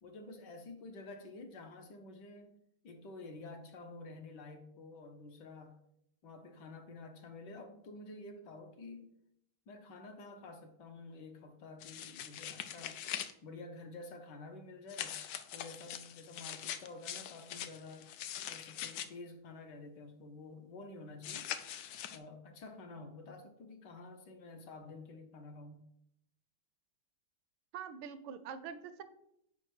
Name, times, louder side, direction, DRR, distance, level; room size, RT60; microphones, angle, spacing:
voice 1, 0.0-2.5 2.8-5.8 6.2-9.1 9.7-13.0 13.4-15.2 15.5-18.1 18.5-21.5 22.1-25.8, left 3 dB, 65° left, 5 dB, 1.3 m, -50 dB
sound 1, 11.8-13.3 14.9-19.1 21.2-22.2, left 10 dB, 85° left, 0.8 m, -43 dB
voice 2, 27.7-29.0, right 7 dB, 80° right, 11 dB, 1.3 m, -44 dB
4.9 x 4.5 x 6.1 m, 0.75 s
omnidirectional pair, 2.2 m